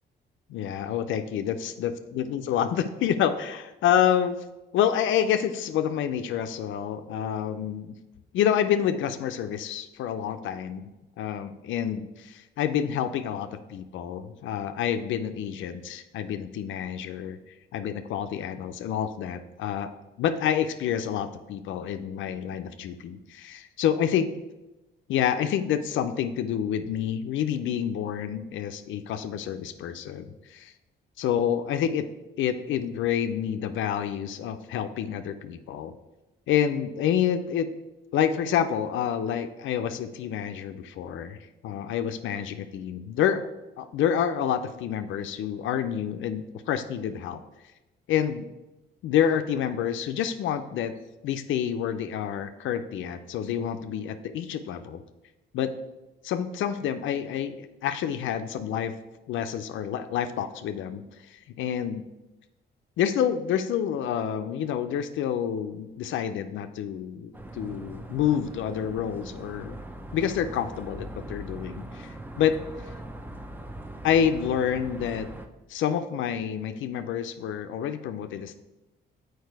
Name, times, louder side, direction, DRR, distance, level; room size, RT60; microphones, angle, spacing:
voice 1, 0.5-4.4 4.7-8.0 8.3-10.9 11.2-17.4 17.7-19.9 20.2-24.3 25.1-30.7 31.2-32.1 32.4-35.9 36.5-37.7 38.1-41.4 41.6-43.4 43.8-47.4 48.1-48.5 49.0-50.9 51.2-55.0 55.5-55.7 56.2-58.9 59.3-62.0 63.0-69.8 70.1-72.6 74.0-75.3 75.7-78.6, left 9 dB, 80° left, 9 dB, 0.5 m, -28 dB
sound 1, 67.3-75.5, right 1 dB, 10° right, 0.6 m, -41 dB
6.6 x 4.7 x 4.6 m, 1.0 s
cardioid pair, 90°, 20 cm